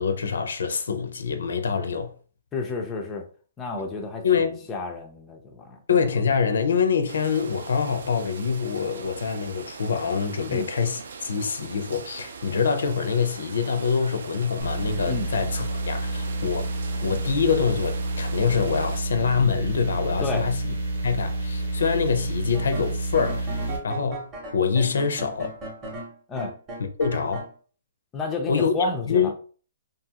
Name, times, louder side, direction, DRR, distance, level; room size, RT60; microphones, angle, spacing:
voice 1, 0.0-2.1 4.2-4.7 5.9-16.7 17.0-20.7 21.0-25.6 27.0-27.5 28.5-28.7 29.1-29.3, left 6 dB, 80° left, 0.5 m, -25 dB
voice 2, 2.5-3.2 3.6-4.2 4.7-5.8 10.5-10.7 15.1-15.3 20.2-20.5 26.3-26.5 28.1-29.3, left 3 dB, 15° left, 0.3 m, -30 dB
sound 1, 7.1-19.0, right 5 dB, 65° right, 0.3 m, -41 dB
sound 2, 14.6-23.8, right 2 dB, 90° right, 0.9 m, -29 dB
sound 3, 22.5-27.5, right 2 dB, 15° right, 0.7 m, -37 dB
2.6 x 2.3 x 2.8 m
hypercardioid pair, 170°, 0 cm